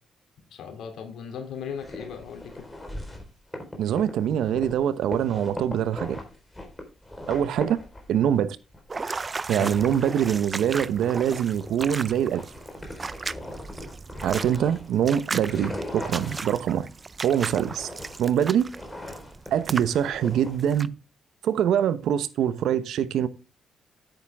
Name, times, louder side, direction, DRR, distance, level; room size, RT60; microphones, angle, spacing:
voice 1, 0.5-2.7 9.5-9.8, left 7 dB, 75° left, 3.1 m, -37 dB
sound 1, 1.6-4.8 5.1-8.4 8.7-16.6 16.8-20.6, left 1 dB, 10° left, 4.2 m, -39 dB
voice 2, 3.8-6.2 7.3-7.8 8.1-8.6 9.5-12.5 14.2-16.9 17.2-17.9 18.2-18.7 19.5-20.9 21.4-23.3, right 9 dB, 75° right, 0.9 m, -24 dB
sound 2, 8.9-20.9, right 4 dB, 30° right, 0.5 m, -36 dB
10.0 x 9.0 x 3.5 m
cardioid pair, 90°, 0 cm